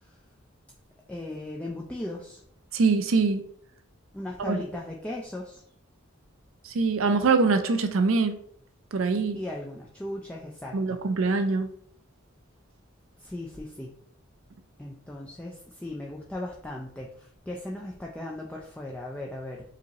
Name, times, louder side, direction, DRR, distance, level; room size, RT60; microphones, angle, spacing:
voice 1, 1.1-2.4 4.1-5.6 9.3-11.0 13.2-13.9 14.8-19.6, left 1 dB, 5° left, -2 dB, 0.3 m, -37 dB
voice 2, 2.7-3.4 4.4-4.6 6.7-8.4 8.9-9.4 10.7-11.7, right 4 dB, 70° right, 8 dB, 0.5 m, -23 dB
4.9 x 2.8 x 2.8 m, 0.64 s
head